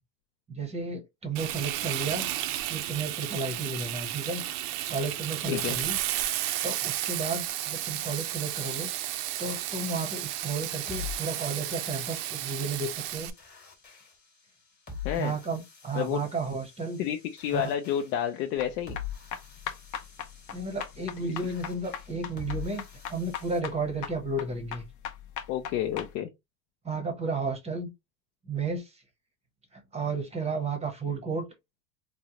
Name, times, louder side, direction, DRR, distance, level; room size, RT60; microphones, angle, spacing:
voice 1, 0.5-2.3 2.7-4.4 4.9-6.0 6.6-8.9 9.4-13.3 15.2-17.0 17.5-17.7 20.5-22.8 23.1-24.8 26.8-27.9 28.5-29.0 29.7-31.4, right 3 dB, 15° right, 0.7 m, -33 dB
Frying (food), 1.3-13.3, right 13 dB, 55° right, 0.5 m, -33 dB
voice 2, 5.5-5.8 15.0-15.3 15.9-16.2 17.0-19.0 21.2-21.3 25.5-26.3, left 10 dB, 85° left, 0.6 m, -30 dB
sound 1, 7.5-23.6, left 8 dB, 20° left, 1.1 m, -45 dB
sound 2, 18.6-26.1, left 9 dB, 35° left, 0.6 m, -39 dB
3.7 x 2.1 x 2.8 m
supercardioid pair, 130°, 50 cm